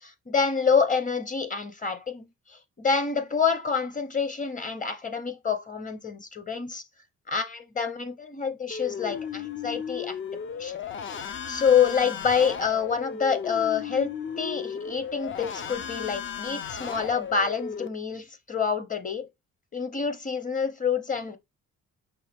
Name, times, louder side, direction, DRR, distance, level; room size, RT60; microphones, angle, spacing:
voice 1, 0.0-2.2 2.8-6.8 7.3-10.2 10.6-10.8 11.5-19.3 19.7-21.4, left 6 dB, 25° left, 0.9 m, -27 dB
sound 1, 8.7-17.9, left 7 dB, 40° left, 0.5 m, -35 dB
5.7 x 2.3 x 3.5 m
cardioid pair, 90°, 30 cm